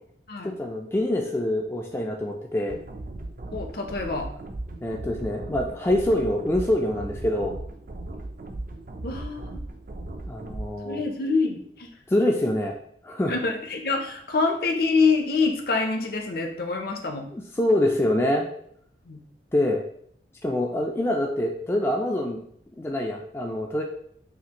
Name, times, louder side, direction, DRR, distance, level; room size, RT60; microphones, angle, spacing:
voice 1, 0.4-2.8 4.8-7.6 10.3-11.0 12.1-12.7 13.0-13.3 17.3-18.5 19.5-19.8 20.4-22.4 22.8-23.8, left 1 dB, 15° left, 1 dB, 0.3 m, -25 dB
sound 1, 2.7-10.7, right 2 dB, 50° right, 0.4 m, -37 dB
voice 2, 3.5-4.3 9.0-9.6 10.8-11.9 13.3-17.3 19.1-19.2, left 4 dB, 55° left, 3 dB, 0.6 m, -26 dB
5.6 x 2.5 x 2.9 m, 0.66 s
head